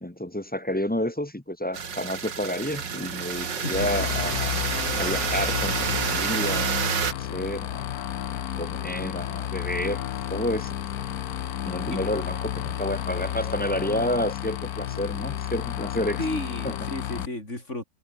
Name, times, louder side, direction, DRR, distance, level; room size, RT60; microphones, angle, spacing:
voice 1, 0.0-4.5 5.0-7.9 8.5-10.0 10.3-10.7 11.6-16.2 16.6-16.9 17.2-17.3, left 1 dB, 5° left, 0.8 m, -30 dB
sound 1, 1.7-7.1, right 7 dB, 90° right, 2.6 m, -28 dB
sound 2, 3.7-17.3, left 11 dB, 65° left, 1.3 m, -32 dB
voice 2, 16.2-17.8, left 1 dB, 40° left, 7.0 m, -32 dB
omnidirectional pair, 1.9 m